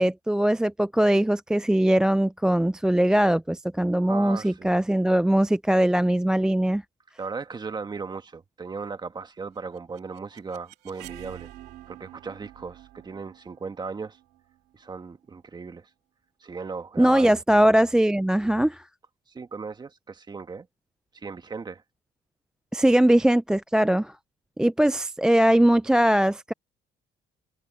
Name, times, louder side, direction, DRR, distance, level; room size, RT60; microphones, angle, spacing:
voice 1, 0.0-6.8 17.0-18.8 22.7-24.1 24.6-26.5, right 1 dB, 5° right, 0.3 m, -21 dB
voice 2, 4.1-4.8 7.2-11.5 11.9-14.2 14.7-15.9 16.4-17.4 19.3-20.7 21.1-21.8, right 5 dB, 25° right, 1.6 m, -37 dB
sound 1, 9.6-15.4, right 14 dB, 75° right, 2.7 m, -48 dB
cardioid pair, 110°, 17 cm